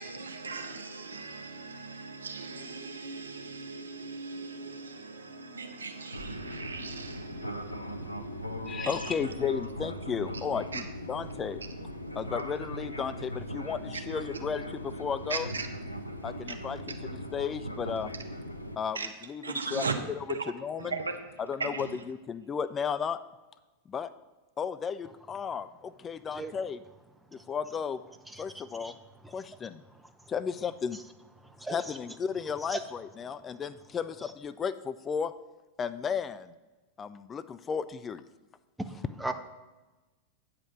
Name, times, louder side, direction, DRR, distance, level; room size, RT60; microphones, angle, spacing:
voice 1, 0.0-9.2 10.3-10.4 10.7-10.8 13.9-14.0 15.3-15.7 18.9-19.1 19.4-19.9 20.3-20.5 20.8-21.3 21.6-22.0, right 4 dB, 75° right, 0.8 m, -38 dB
Fixed-wing aircraft airplane, 6.1-18.8, equal, 85° left, 0.6 m, -39 dB
voice 2, 8.7-10.8 11.1-11.6 12.2-15.5 16.2-16.8 17.3-18.1 18.8-19.0 19.3-19.4 19.7-19.8 20.6-20.9 21.5-23.2 23.9-24.1 24.6-26.8 27.3-28.0 28.4-28.9 29.3-29.8 30.3-31.0 31.7-35.3 35.8-36.5 37.0-38.2, left 6 dB, 20° left, 0.3 m, -34 dB
voice 3, 28.3-29.0 29.2-29.5 29.9-30.3 30.9-31.0 31.4-32.0 32.7-32.8 33.5-33.6 38.8-39.3, right 2 dB, 5° right, 0.7 m, -39 dB
8.9 x 5.1 x 5.8 m
figure-of-eight pair, 90°, 0 cm